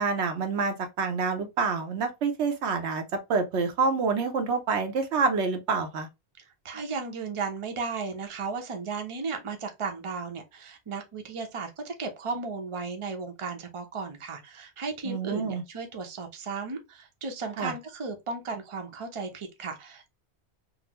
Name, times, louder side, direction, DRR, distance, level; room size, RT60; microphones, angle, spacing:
voice 1, 0.0-3.0 3.3-6.1 15.0-15.6 17.6-17.7, right 4 dB, 90° right, 1.0 m, -27 dB
voice 2, 6.4-20.1, right 4 dB, 35° right, 0.6 m, -35 dB
3.8 x 2.0 x 2.9 m
omnidirectional pair, 1.1 m